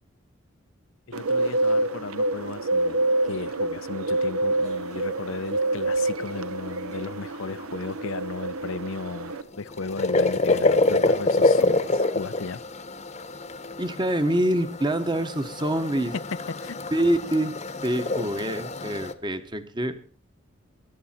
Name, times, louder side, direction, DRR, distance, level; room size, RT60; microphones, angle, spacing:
voice 1, 1.1-12.6 16.1-16.2 16.6-16.8, left 4 dB, 70° left, 0.6 m, -36 dB
Bird, 1.1-9.4, right 2 dB, 90° right, 1.1 m, -27 dB
sound 1, 9.3-19.1, left 2 dB, 30° left, 1.0 m, -26 dB
voice 2, 13.8-16.1 16.9-17.5 17.8-19.9, right 1 dB, 20° right, 1.1 m, -25 dB
22.0 x 11.0 x 4.4 m
head